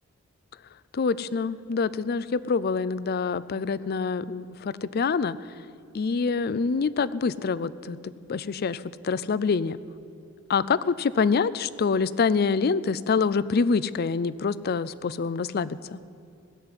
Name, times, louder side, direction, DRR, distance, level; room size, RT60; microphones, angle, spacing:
voice 1, 0.9-5.4 5.9-8.0 8.3-9.8 10.5-16.0, left 5 dB, 50° left, 18 dB, 0.4 m, -26 dB
16.5 x 7.6 x 9.7 m, 2.5 s
head